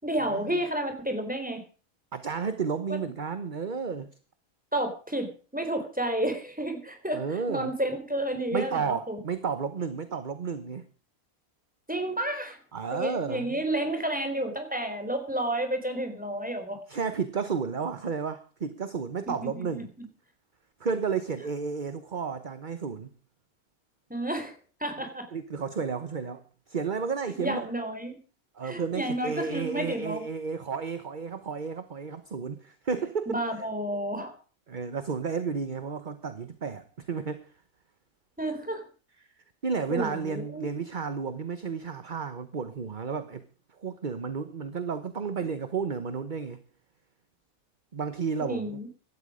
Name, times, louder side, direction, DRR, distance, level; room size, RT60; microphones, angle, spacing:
voice 1, 0.0-1.6 2.9-3.0 4.7-9.2 11.9-12.6 12.9-16.8 19.3-20.1 24.1-24.5 24.8-25.3 27.4-28.2 28.6-30.2 33.3-34.3 38.4-38.8 39.9-40.7 48.4-48.9, right 1 dB, 5° right, 4.1 m, -31 dB
voice 2, 2.1-4.1 7.1-7.7 8.5-10.9 12.7-13.6 16.9-19.9 20.8-23.1 25.3-26.4 26.7-27.7 28.5-33.7 34.7-37.5 39.6-43.4 43.8-46.6 47.9-48.8, right 5 dB, 35° right, 1.1 m, -32 dB
17.0 x 12.5 x 5.1 m
omnidirectional pair, 1.5 m